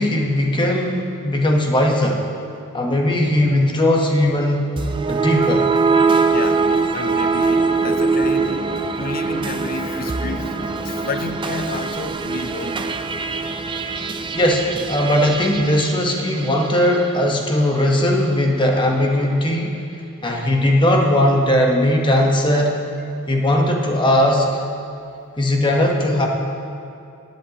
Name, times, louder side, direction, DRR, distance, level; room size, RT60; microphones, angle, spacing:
voice 1, 0.0-2.2 2.7-4.7 5.1-5.7 14.3-19.8 20.2-22.8 23.3-24.6 25.4-26.3, left 1 dB, 20° left, 1 dB, 1.1 m, -18 dB
sound 1, 4.8-17.1, right 4 dB, 20° right, 0.3 m, -22 dB
sound 2, 6.2-13.4, equal, 65° left, 2.8 m, -41 dB
voice 2, 6.3-8.7 9.0-13.0, left 3 dB, 40° left, 9 dB, 0.5 m, -31 dB
15.0 x 10.5 x 2.9 m, 2.5 s
head